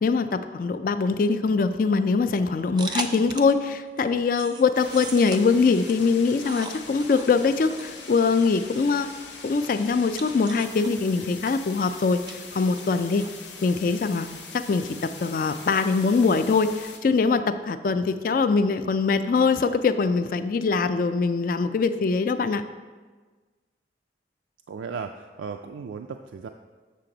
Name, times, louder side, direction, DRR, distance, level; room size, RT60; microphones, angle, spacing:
voice 1, 0.0-9.1 9.4-13.3 13.6-14.3 14.5-22.6, left 4 dB, 50° left, 11 dB, 0.3 m, -23 dB
sound 1, 2.8-3.6 4.0-13.3, right 4 dB, 25° right, 0.4 m, -40 dB
sound 2, 4.7-17.0, left 4 dB, 80° left, 1.0 m, -42 dB
voice 2, 24.7-26.5, right 5 dB, 85° right, 5 dB, 0.3 m, -36 dB
7.5 x 6.7 x 3.8 m, 1.4 s
head